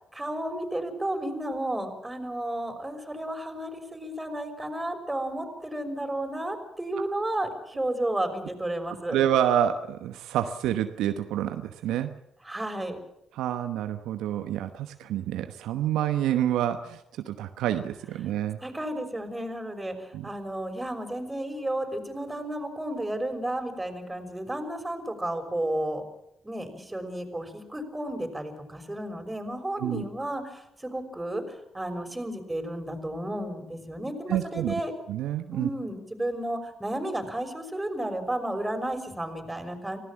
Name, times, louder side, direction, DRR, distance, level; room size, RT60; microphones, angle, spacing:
voice 1, 0.1-9.2 12.5-13.0 18.6-26.0 26.4-31.4 31.7-34.9 35.5-40.0, right 1 dB, 15° right, 6 dB, 5.9 m, -32 dB
voice 2, 9.1-12.1 13.3-18.6 20.1-20.2 29.8-30.0 34.3-34.7 35.1-35.7, right 11 dB, 70° right, 8 dB, 1.0 m, -28 dB
25.0 x 16.5 x 7.5 m, 0.81 s
hypercardioid pair, 45°, 0 cm